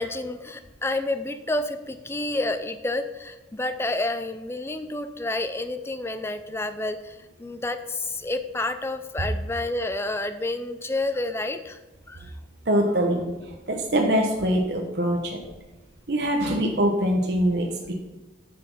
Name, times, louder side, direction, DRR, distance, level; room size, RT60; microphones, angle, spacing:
voice 1, 0.0-7.1 7.4-11.8 12.1-12.2, left 2 dB, 15° left, 10 dB, 0.5 m, -29 dB
voice 2, 12.7-15.4 16.1-17.9, equal, 60° right, 1 dB, 1.1 m, -23 dB
9.8 x 6.1 x 5.5 m, 1.1 s
head